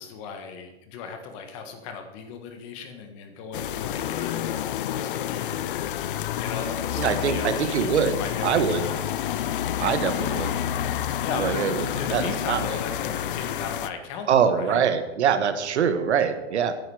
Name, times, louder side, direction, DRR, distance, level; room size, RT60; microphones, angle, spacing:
voice 1, 0.0-5.6 6.4-9.0 11.2-14.8, left 5 dB, 30° left, 6 dB, 1.5 m, -37 dB
sound 1, 3.5-13.9, left 11 dB, 50° left, 0.6 m, -29 dB
voice 2, 7.0-8.9 9.8-10.5 11.3-12.8 14.3-16.7, right 7 dB, 85° right, 10 dB, 1.6 m, -24 dB
13.0 x 10.0 x 4.9 m, 1.1 s
supercardioid pair, 170°, 33 cm